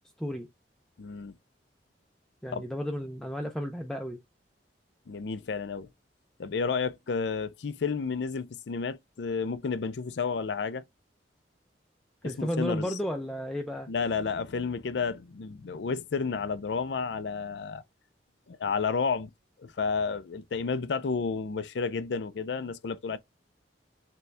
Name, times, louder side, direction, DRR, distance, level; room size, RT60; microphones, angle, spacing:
voice 1, 1.0-1.3 2.5-2.6 5.1-5.9 6.4-10.8 12.2-13.0 13.9-17.8 18.5-19.3 19.6-23.2, left 5 dB, 70° left, 0.5 m, -31 dB
voice 2, 2.4-4.2 12.2-13.9, equal, 5° left, 0.5 m, -33 dB
6.8 x 2.3 x 3.2 m
head